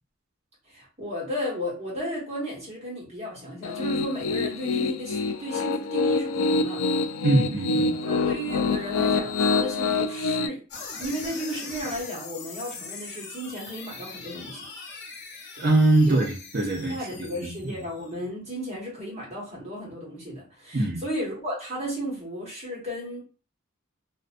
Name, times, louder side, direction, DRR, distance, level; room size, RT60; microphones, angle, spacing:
voice 1, 0.7-6.8 8.1-10.6 11.0-14.7 16.0-16.2 16.9-23.2, equal, 35° right, 1.2 m, -34 dB
Piano, 3.6-10.5, left 3 dB, 85° left, 0.3 m, -26 dB
voice 2, 7.2-8.0 15.6-17.8 20.7-21.0, right 2 dB, 50° right, 0.6 m, -23 dB
sound 1, 10.7-18.2, left 4 dB, 55° left, 0.7 m, -41 dB
2.4 x 2.1 x 2.5 m
head